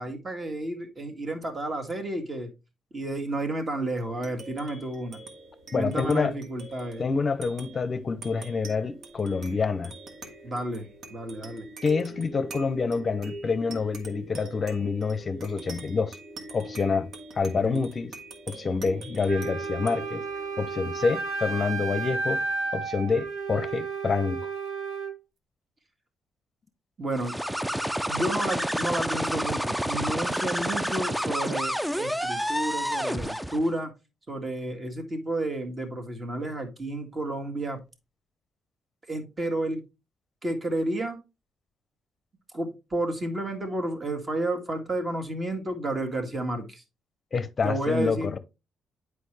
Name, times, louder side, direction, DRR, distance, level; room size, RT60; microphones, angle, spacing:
voice 1, 0.0-2.5 2.9-5.2 5.7-7.0 10.4-11.7 17.5-17.9 27.0-27.4 28.1-33.9 34.3-37.8 39.1-39.8 40.4-41.2 42.5-46.8 47.6-48.3, right 1 dB, 30° right, 1.8 m, -31 dB
sound 1, 4.0-22.9, right 2 dB, 65° right, 1.5 m, -44 dB
voice 2, 5.7-6.3 7.0-9.9 11.8-16.2 16.5-17.1 17.4-18.1 18.5-20.2 20.6-22.4 22.7-24.4 47.3-48.4, left 4 dB, 40° left, 0.6 m, -27 dB
Wind instrument woodwind instrument, 19.2-25.1, right 4 dB, 85° right, 0.9 m, -32 dB
sound 2, 27.1-33.7, equal, 5° right, 0.4 m, -29 dB
8.3 x 4.8 x 3.2 m
cardioid pair, 90°, 0 cm